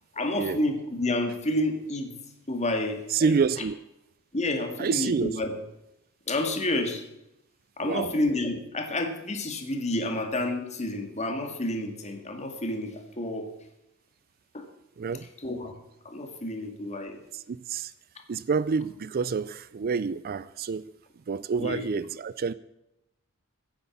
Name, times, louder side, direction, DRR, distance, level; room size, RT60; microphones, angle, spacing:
voice 1, 0.2-2.1 2.5-3.3 4.3-5.6 6.3-7.0 7.8-13.5 14.5-14.6 15.4-15.7 16.1-17.2 21.6-22.0, left 1 dB, 30° left, 2.0 m, -29 dB
voice 2, 3.1-3.7 4.8-5.4 7.8-8.1 15.0-15.3 17.3-17.9 18.3-20.8 21.3-22.5, right 5 dB, 45° right, 0.4 m, -28 dB
15.5 x 8.0 x 7.3 m
head